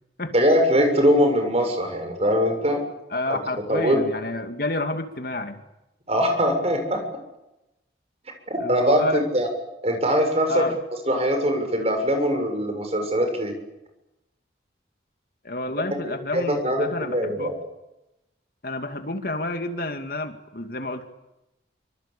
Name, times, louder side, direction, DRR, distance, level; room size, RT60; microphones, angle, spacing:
voice 1, 0.3-2.8 3.2-3.4 3.7-4.0 6.1-7.0 8.5-9.5 9.8-10.6 11.1-13.5 16.0-17.5, equal, 35° right, 5 dB, 6.9 m, -22 dB
voice 2, 3.1-5.6 8.6-9.2 10.5-10.8 15.4-17.5 18.6-21.1, left 2 dB, 55° left, 7 dB, 2.5 m, -30 dB
25.5 x 25.5 x 8.6 m, 0.92 s
head